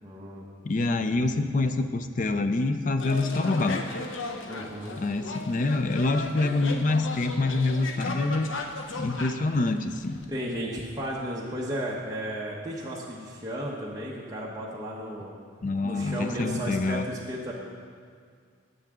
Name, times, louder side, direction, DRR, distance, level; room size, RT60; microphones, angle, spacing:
voice 1, 0.0-0.5 4.4-5.0 10.3-15.3 15.8-17.5, equal, 20° right, -4 dB, 0.9 m, -34 dB
voice 2, 0.6-3.8 5.0-8.5 9.0-10.2 15.6-17.1, left 2 dB, 40° left, 9 dB, 0.4 m, -26 dB
sound 1, 3.0-10.3, left 3 dB, 75° left, 0.8 m, -36 dB
13.0 x 8.0 x 3.7 m, 2.1 s
head